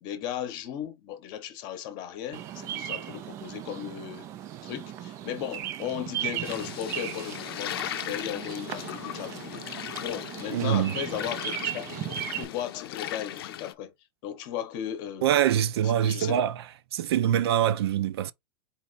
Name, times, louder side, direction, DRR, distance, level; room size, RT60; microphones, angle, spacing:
voice 1, 0.0-4.3 4.6-9.6 10.0-11.9 12.3-13.9 14.2-15.4 16.0-16.4, left 10 dB, 30° left, 0.9 m, -36 dB
Bird vocalization bird call bird song, 2.3-12.4, right 12 dB, 20° right, 0.3 m, -37 dB
sound 1, 6.4-13.7, left 12 dB, 65° left, 0.6 m, -38 dB
voice 2, 10.5-10.9 15.2-16.5 16.9-18.3, right 10 dB, 70° right, 0.6 m, -24 dB
4.2 x 3.0 x 4.0 m
supercardioid pair, 170°, 14 cm